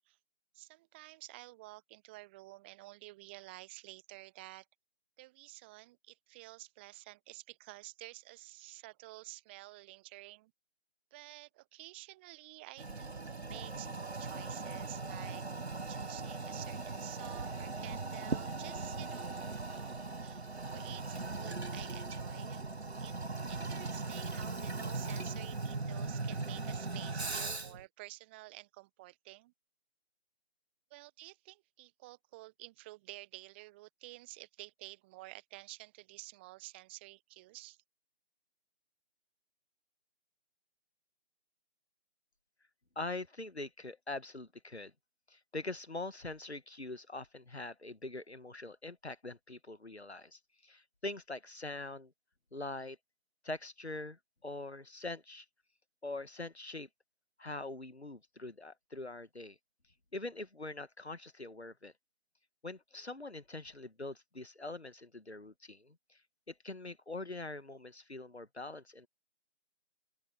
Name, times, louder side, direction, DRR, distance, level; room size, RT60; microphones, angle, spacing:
voice 1, 0.5-4.7 5.2-10.5 11.1-15.4 15.9-20.4 20.7-22.6 23.0-23.1 23.4-29.5 30.9-37.8, right 20 dB, 10° right, 1.2 m, -51 dB
Toilet flush, 12.8-27.8, right 3 dB, 80° right, 1.4 m, -39 dB
voice 2, 43.0-44.9 45.3-52.1 52.5-53.0 53.4-55.5 56.0-56.9 57.4-59.6 60.1-61.9 62.6-66.2 66.5-69.1, left 2 dB, 85° left, 1.7 m, -43 dB
open air
figure-of-eight pair, 150°, 32 cm